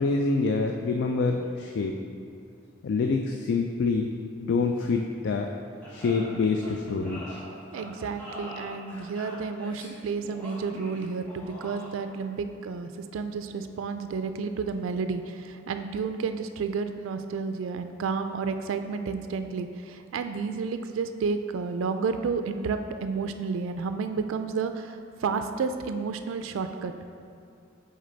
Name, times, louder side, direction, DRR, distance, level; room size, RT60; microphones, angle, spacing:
voice 1, 0.0-2.0 2.8-4.1 4.4-5.5 5.9-7.4, left 4 dB, 65° left, 3 dB, 0.3 m, -26 dB
sound 1, 5.8-12.1, equal, 10° left, 1.3 m, -43 dB
voice 2, 7.7-26.9, right 5 dB, 85° right, 8 dB, 0.3 m, -31 dB
6.4 x 4.1 x 3.9 m, 2.4 s
head